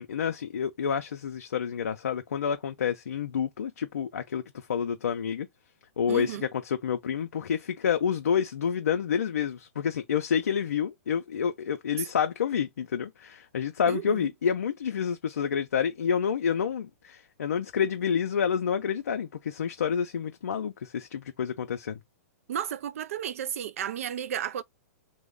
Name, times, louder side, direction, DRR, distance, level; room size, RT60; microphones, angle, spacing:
voice 1, 0.0-5.5 6.0-22.0, left 7 dB, 75° left, 0.4 m, -29 dB
voice 2, 6.1-6.5 13.9-14.3 22.5-24.6, right 10 dB, 65° right, 0.4 m, -33 dB
3.0 x 2.0 x 3.5 m
hypercardioid pair, 115°, 8 cm